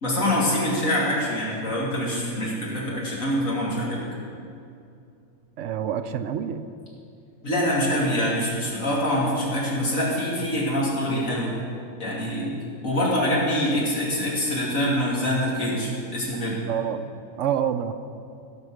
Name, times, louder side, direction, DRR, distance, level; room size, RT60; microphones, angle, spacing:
voice 1, 0.0-4.1 7.4-11.5 12.0-12.5 12.8-16.6, equal, 85° left, -5 dB, 3.0 m, -25 dB
voice 2, 5.6-6.7 16.7-17.1 17.4-17.9, right 9 dB, 70° right, 10 dB, 0.9 m, -27 dB
17.0 x 5.8 x 6.3 m, 2.5 s
omnidirectional pair, 1.4 m